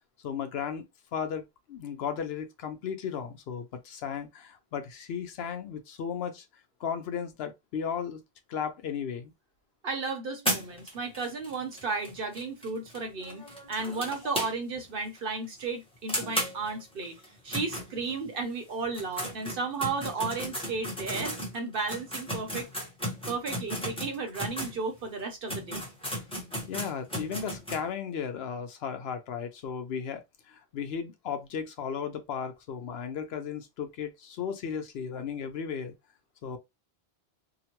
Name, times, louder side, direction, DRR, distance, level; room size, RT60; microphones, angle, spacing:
voice 1, 0.2-6.4 6.8-8.2 8.5-9.3 26.7-35.9 36.4-36.6, left 7 dB, 75° left, 0.8 m, -35 dB
voice 2, 9.8-17.2 17.4-22.7 23.3-25.8, right 4 dB, 60° right, 0.9 m, -34 dB
sound 1, 10.4-14.9 15.2-15.3 15.6-15.7 16.1-18.4 18.8-24.8 25.2-25.3 25.5-27.8, equal, 5° left, 0.9 m, -35 dB
2.9 x 2.1 x 2.9 m
omnidirectional pair, 1.1 m